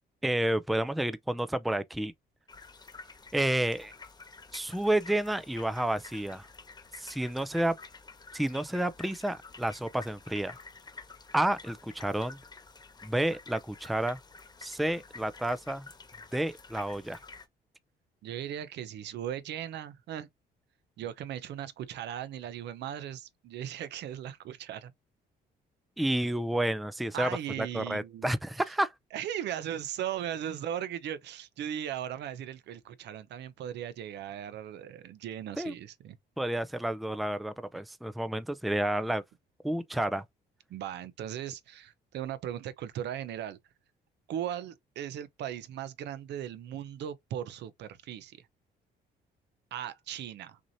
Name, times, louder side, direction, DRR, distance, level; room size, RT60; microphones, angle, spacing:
voice 1, 0.2-2.1 3.3-3.9 4.5-6.4 7.0-7.7 8.3-10.6 11.3-12.4 13.0-14.2 14.6-15.9 16.3-17.2 26.0-27.3 27.6-28.9 35.6-35.7 36.4-39.2 39.6-40.2, right 1 dB, ahead, 0.4 m, -30 dB
sound 1, 2.5-17.5, left 4 dB, 25° left, 1.2 m, -50 dB
voice 2, 18.2-20.3 21.0-24.9 27.1-28.4 29.1-36.2 40.7-43.6 44.3-48.4 49.7-50.6, right 10 dB, 75° right, 0.7 m, -38 dB
6.1 x 2.8 x 2.7 m
cardioid pair, 110°, 18 cm